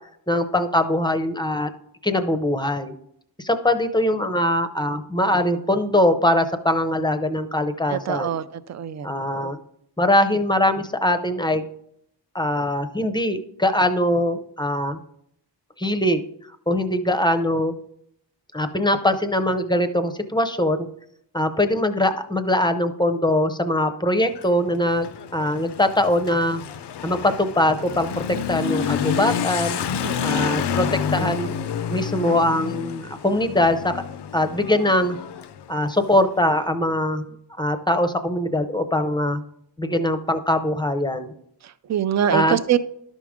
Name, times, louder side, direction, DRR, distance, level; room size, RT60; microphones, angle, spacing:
voice 1, 0.3-1.7 2.0-2.9 3.4-8.4 9.0-9.6 10.0-11.6 12.3-15.0 15.8-16.2 16.7-17.7 18.5-20.9 21.3-26.6 27.0-28.2 28.5-29.8 30.2-34.0 34.3-35.2 35.7-37.3 37.6-39.4 39.8-41.3 42.3-42.6, left 1 dB, 10° left, 8 dB, 0.6 m, -22 dB
voice 2, 7.9-9.1 30.0-30.7 31.1-31.4 41.6-42.8, right 10 dB, 45° right, 14 dB, 0.4 m, -25 dB
Motorcycle / Accelerating revving vroom, 24.2-36.5, left 8 dB, 70° left, 0.5 m, -29 dB
12.0 x 6.2 x 3.6 m, 0.73 s
wide cardioid pair, 165°, 42 cm